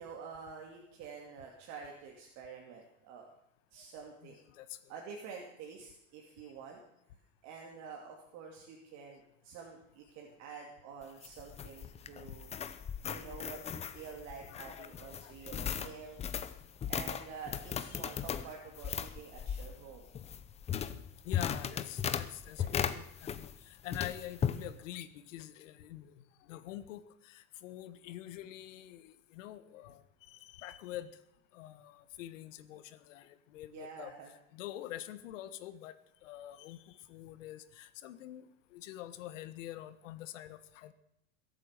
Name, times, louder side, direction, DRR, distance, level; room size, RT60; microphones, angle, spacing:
voice 1, 0.0-3.3 3.7-4.4 4.9-6.8 7.4-12.5 13.1-16.2 16.9-20.2 22.6-22.7 33.7-34.3, right 5 dB, 45° right, 0 dB, 2.7 m, -48 dB
voice 2, 4.2-4.9 12.2-12.3 13.3-13.5 13.8-13.9 14.5-15.6 17.8-18.2 21.2-30.0 30.3-31.1 31.5-34.1 34.5-35.9 36.2-38.5 38.7-40.9, left 13 dB, 80° left, 12 dB, 1.5 m, -46 dB
sound 1, 11.0-23.6 23.9-24.6, left 8 dB, 15° left, 0.6 m, -37 dB
22.0 x 8.7 x 6.7 m, 0.80 s
supercardioid pair, 145°, 37 cm